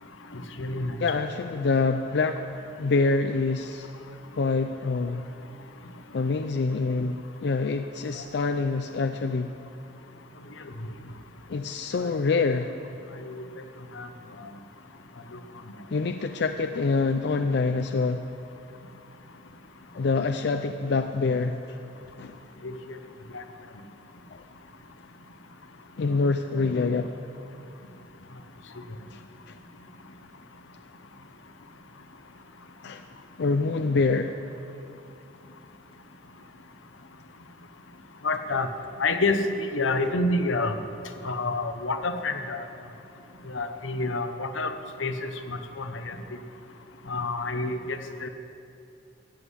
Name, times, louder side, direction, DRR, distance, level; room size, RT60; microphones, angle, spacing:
voice 1, 0.3-1.0 12.0-12.1 13.2-13.4 13.9-14.1 15.3-15.4 22.6-23.0 23.3-23.4 38.2-38.7 39.0-40.8 41.2-42.6 43.5-46.2 47.1-48.3, left 2 dB, 85° left, 8 dB, 0.9 m, -28 dB
voice 2, 1.0-2.5 2.8-3.9 4.4-5.3 6.1-9.5 11.5-12.7 15.9-18.2 19.9-21.8 22.2-22.4 24.3-24.4 26.0-27.1 29.1-29.2 29.5-29.6 32.8-33.0 33.4-34.4, left 4 dB, 60° left, 8 dB, 0.4 m, -26 dB
14.5 x 5.5 x 9.7 m, 2.6 s
head